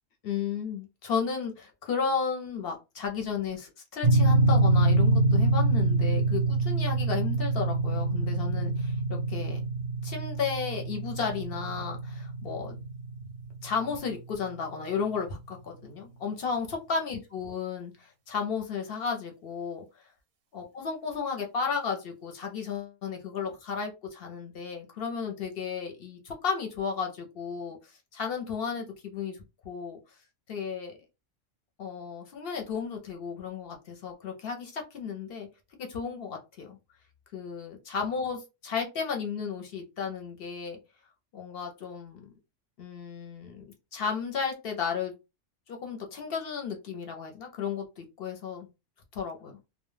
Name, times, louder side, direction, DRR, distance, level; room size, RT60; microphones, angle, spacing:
voice 1, 0.2-9.0 9.3-9.6 10.0-12.7 13.6-19.8 20.5-29.4 29.6-30.0 30.5-31.0 31.8-35.5 35.8-36.8 37.3-40.8 41.3-42.2 42.8-43.6 43.9-45.1 45.7-48.7 49.1-49.5, left 6 dB, 60° left, 3 dB, 0.7 m, -33 dB
sound 1, 4.0-14.2, right 2 dB, 60° right, 0.6 m, -26 dB
2.2 x 2.1 x 3.1 m, 0.27 s
omnidirectional pair, 1.3 m